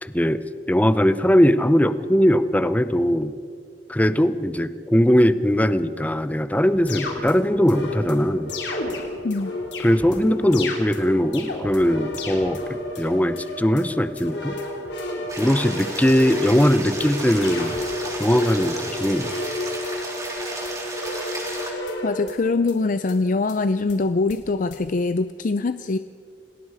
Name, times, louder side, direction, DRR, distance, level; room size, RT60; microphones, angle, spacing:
voice 1, 0.0-3.3 3.9-8.5 9.8-14.6 15.4-17.7 18.2-19.3, equal, 10° left, 12 dB, 0.7 m, -20 dB
sound 1, 6.6-22.8 23.1-23.2 23.5-23.6 23.9-24.0 24.3-24.4 24.7-24.8, left 1 dB, 70° left, 3.9 m, -31 dB
sound 2, 15.3-21.7, right 2 dB, 20° right, 3.7 m, -34 dB
voice 2, 22.0-26.0, left 3 dB, 45° left, 12 dB, 0.5 m, -23 dB
29.0 x 19.0 x 4.9 m, 2.3 s
head